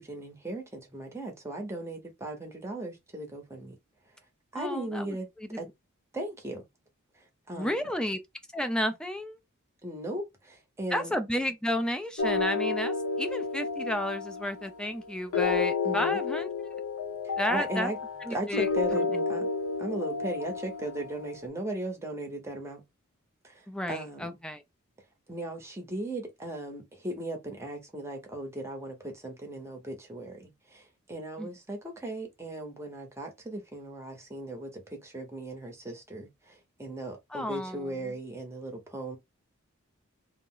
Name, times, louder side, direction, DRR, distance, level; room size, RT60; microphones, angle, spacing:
voice 1, 0.0-3.7 4.5-5.3 5.6-5.7 6.1-6.6 7.5-7.9 9.8-11.1 15.8-16.2 17.2-18.0 18.3-19.5 19.8-22.8 23.4-24.3 25.3-39.2, right 1 dB, 10° right, 0.7 m, -37 dB
voice 2, 4.6-5.6 7.6-8.2 8.5-9.4 10.9-16.5 17.4-17.9 18.3-18.7 19.1-19.2 23.7-24.6 31.4-31.5 37.3-38.1, equal, 5° left, 0.3 m, -32 dB
sound 1, 12.2-21.4, left 4 dB, 65° left, 0.7 m, -31 dB
2.4 x 2.0 x 3.7 m
head